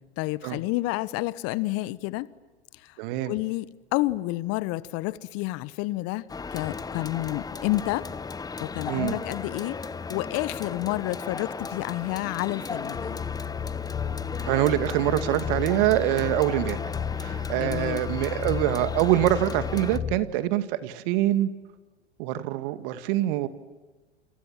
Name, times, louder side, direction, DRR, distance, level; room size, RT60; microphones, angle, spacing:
voice 1, 0.2-2.3 2.7-3.0 3.3-8.1 8.6-9.8 10.1-13.2 17.6-18.0, left 19 dB, 45° left, 1.1 m, -30 dB
voice 2, 3.0-3.3 8.9-9.2 14.4-16.8 17.2-21.5 22.2-23.5, right 14 dB, 55° right, 2.2 m, -25 dB
sound 1, 6.3-20.0, left 4 dB, 10° left, 0.9 m, -36 dB
sound 2, 12.9-20.2, left 8 dB, 25° left, 4.8 m, -33 dB
29.5 x 26.5 x 7.5 m
hypercardioid pair, 90°, 33 cm